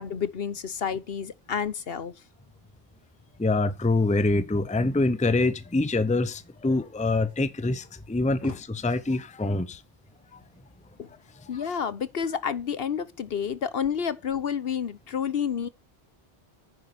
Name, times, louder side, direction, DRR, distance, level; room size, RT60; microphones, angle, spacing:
voice 1, 0.0-2.1 8.4-8.6 11.0-11.1 11.5-15.7, left 7 dB, 65° left, 1.1 m, -30 dB
voice 2, 3.4-9.8, left 2 dB, 10° left, 0.7 m, -25 dB
10.5 x 9.6 x 6.9 m
omnidirectional pair, 1.1 m